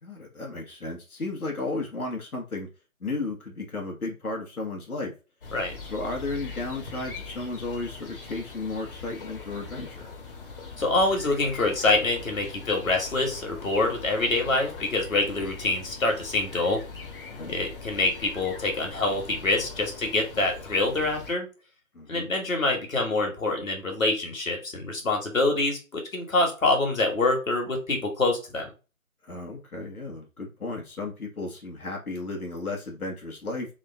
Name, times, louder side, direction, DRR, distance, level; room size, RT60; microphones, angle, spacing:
voice 1, 0.0-2.7 3.0-5.1 5.9-10.1 17.3-17.6 21.9-22.3 29.2-33.7, left 3 dB, 85° left, 1 dB, 1.4 m, -34 dB
sound 1, 5.4-21.3, left 4 dB, 40° left, 1.1 m, -42 dB
voice 2, 10.8-16.8 17.5-21.5 22.1-28.7, left 2 dB, 65° left, 3 dB, 1.7 m, -25 dB
3.6 x 2.5 x 3.4 m, 0.31 s
figure-of-eight pair, 155°, 43 cm